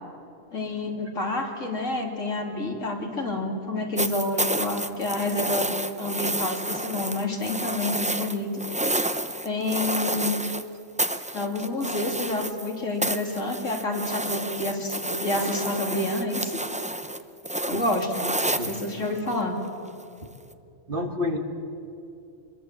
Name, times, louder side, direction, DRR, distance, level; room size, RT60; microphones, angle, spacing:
voice 1, 0.5-5.7 6.0-8.6 9.4-10.4 11.3-16.6 17.7-18.3 18.7-19.6, left 2 dB, 75° left, 0 dB, 3.5 m, -28 dB
sound 1, 4.0-10.6 11.0-12.7 13.0-19.3 20.5-20.6, right 1 dB, 10° right, 0.4 m, -30 dB
voice 2, 20.9-21.4, left 1 dB, 45° right, 5 dB, 1.7 m, -29 dB
26.0 x 22.0 x 7.6 m, 2.7 s
omnidirectional pair, 1.3 m